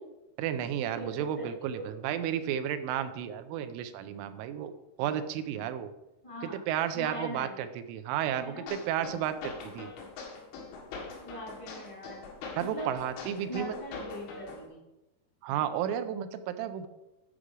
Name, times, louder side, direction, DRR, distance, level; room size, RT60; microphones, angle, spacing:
voice 1, 0.4-4.7 5.0-5.9 6.4-9.9 12.6-13.7 15.4-16.9, right 10 dB, 90° right, 10 dB, 3.2 m, -32 dB
voice 2, 0.9-1.9 6.2-6.6 6.9-7.6 8.4-8.7 9.6-9.8 11.2-12.2 12.6-12.9 13.4-14.8, equal, 25° left, -3 dB, 0.7 m, -41 dB
sound 1, 8.7-14.7, left 4 dB, 90° left, 4.3 m, -43 dB
10.0 x 4.9 x 6.2 m, 0.96 s
omnidirectional pair, 5.5 m